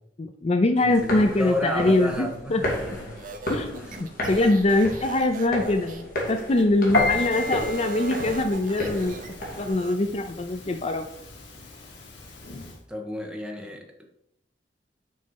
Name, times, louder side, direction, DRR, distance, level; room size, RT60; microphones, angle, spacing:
voice 1, 0.2-2.6 3.5-9.2 9.6-11.1, left 2 dB, 35° left, 7 dB, 0.5 m, -23 dB
voice 2, 0.8-3.2 3.8-4.1 12.9-14.0, left 1 dB, 5° right, 1 dB, 1.3 m, -32 dB
sound 1, 0.9-9.7, equal, 55° left, 2.5 m, -34 dB
sound 2, 3.2-6.7 7.1-10.0, right 4 dB, 50° right, 0.9 m, -39 dB
Piano, 6.9-12.8, left 3 dB, 90° left, 2.0 m, -32 dB
6.6 x 5.4 x 5.3 m, 0.74 s
head